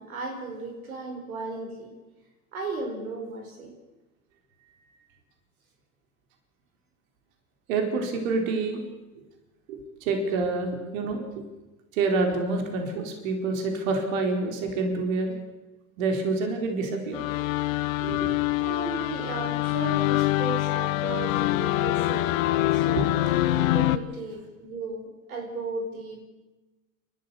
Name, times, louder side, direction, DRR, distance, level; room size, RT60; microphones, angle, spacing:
voice 1, 0.0-1.9 2.5-3.7 18.6-23.1 23.7-26.2, right 3 dB, 90° right, 2 dB, 4.9 m, -35 dB
voice 2, 7.7-8.8 9.1-9.2 9.7-11.4 11.9-15.3 16.0-18.4 22.9-23.0, right 3 dB, 65° right, 4 dB, 4.4 m, -28 dB
sound 1, 17.1-24.0, left 16 dB, 70° left, 1.3 m, -25 dB
30.0 x 13.0 x 7.1 m, 1.1 s
hypercardioid pair, 105°, 42 cm